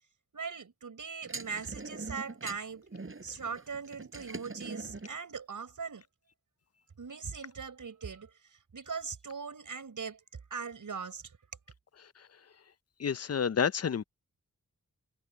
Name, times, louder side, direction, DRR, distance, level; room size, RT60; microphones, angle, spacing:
voice 1, 0.3-2.9 3.2-6.0 7.0-10.2 10.5-11.4, right 5 dB, 80° right, 5.7 m, -40 dB
sound 1, 1.2-5.2, right 3 dB, 40° right, 6.7 m, -43 dB
voice 2, 13.0-14.0, left 7 dB, 50° left, 0.6 m, -29 dB
wide cardioid pair, 80°, 31 cm